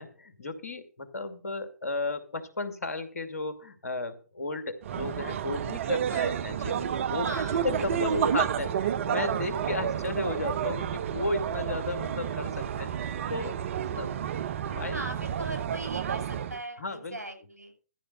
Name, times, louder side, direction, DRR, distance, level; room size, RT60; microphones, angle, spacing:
voice 1, 0.0-7.3 7.6-12.9 13.3-13.6 13.9-14.1 14.7-15.0 16.8-17.2, left 2 dB, 70° left, 8 dB, 2.5 m, -34 dB
sound 1, 4.8-16.6, right 8 dB, 50° right, 0.8 m, -30 dB
voice 2, 6.1-6.4 7.2-8.3 9.6-9.9 13.8-14.2 14.9-17.7, right 2 dB, 80° right, 4 dB, 6.6 m, -39 dB
14.0 x 5.2 x 7.9 m, 0.36 s
figure-of-eight pair, 125°, 9 cm